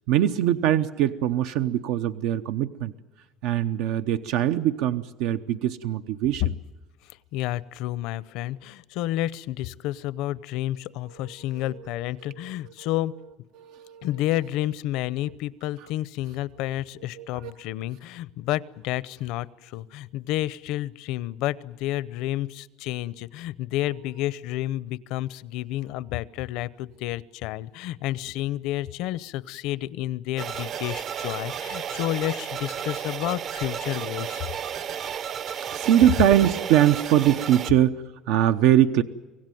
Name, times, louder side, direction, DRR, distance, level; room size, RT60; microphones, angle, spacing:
voice 1, 0.1-2.9 3.4-6.5 11.2-11.9 12.2-12.5 13.6-14.1 15.2-15.3 17.2-17.5 35.7-39.0, right 11 dB, 80° right, 9 dB, 0.8 m, -22 dB
voice 2, 7.0-13.1 14.0-34.5, left 15 dB, 70° left, 19 dB, 0.7 m, -30 dB
sound 1, 30.4-37.7, right 8 dB, 40° right, 0.7 m, -33 dB
25.0 x 17.0 x 9.2 m, 1.2 s
cardioid pair, 155°, 0 cm